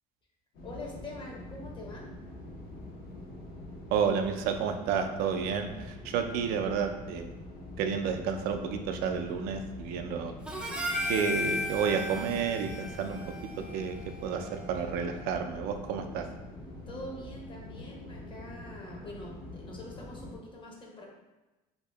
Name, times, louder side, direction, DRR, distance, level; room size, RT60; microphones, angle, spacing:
sound 1, 0.5-20.4, left 1 dB, 75° left, 1.0 m, -45 dB
voice 1, 0.6-2.1 6.5-6.7 10.6-10.8 16.9-21.1, left 1 dB, 30° left, -1 dB, 0.8 m, -45 dB
voice 2, 3.9-7.3 7.8-10.3 11.1-13.2 13.6-14.0 14.2-16.3, right 6 dB, 75° right, 6 dB, 0.4 m, -31 dB
Harmonica, 10.5-14.9, left 1 dB, 5° right, 0.3 m, -36 dB
2.8 x 2.7 x 3.3 m, 1.1 s
cardioid pair, 115°, 16 cm